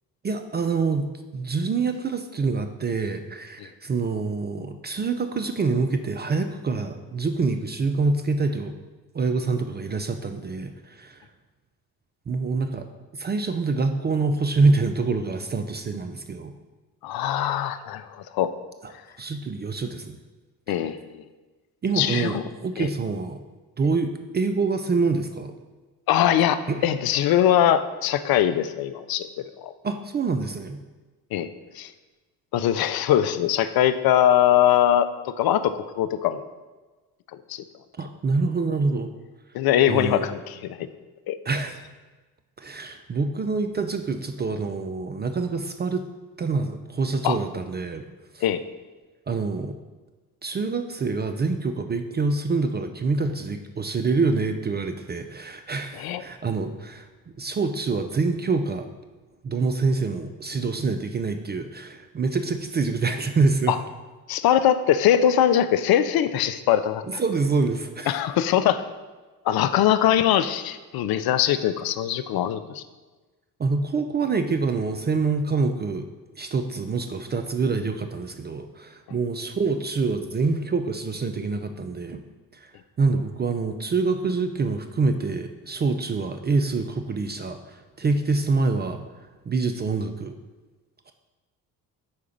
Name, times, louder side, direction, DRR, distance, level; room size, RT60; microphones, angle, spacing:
voice 1, 0.2-1.0 1.3-8.7 9.1-11.2 12.3-12.9 13.1-16.5 18.8-18.9 19.2-20.2 21.8-23.4 23.8-25.5 26.7-26.8 29.8-30.8 38.0-39.1 39.9-40.3 41.5-41.8 42.6-46.0 46.4-48.0 48.3-48.4 49.3-49.8 50.4-57.1 57.4-58.9 59.4-63.7 67.1-68.2 73.6-76.1 76.4-82.2 82.5-82.7 83.0-90.4 91.1-91.2, right 4 dB, 25° right, 7 dB, 0.4 m, -26 dB
voice 2, 17.0-18.5 20.7-21.0 22.0-22.4 22.8-22.9 26.1-29.3 29.6-29.7 31.3-31.5 31.7-31.9 32.5-36.5 37.5-37.6 39.5-40.9 41.3-41.4 47.2-47.4 48.4-48.6 56.0-56.2 63.7-63.8 64.3-67.2 68.1-68.9 69.5-72.8, left 11 dB, 50° left, 12 dB, 0.5 m, -22 dB
4.7 x 4.4 x 5.2 m, 1.2 s
hypercardioid pair, 50°, 48 cm